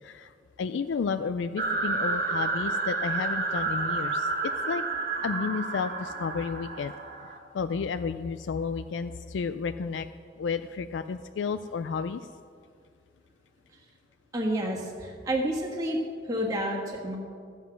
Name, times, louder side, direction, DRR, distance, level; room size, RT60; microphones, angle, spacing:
voice 1, 0.0-4.8 5.2-6.9 7.5-10.1 10.4-12.3, left 5 dB, 75° left, 10 dB, 0.4 m, -32 dB
sound 1, 1.6-7.4, right 3 dB, 55° right, 1.2 m, -30 dB
voice 2, 14.3-16.0 16.2-17.2, right 1 dB, 20° right, -3 dB, 1.5 m, -29 dB
13.0 x 8.1 x 5.9 m, 2.2 s
head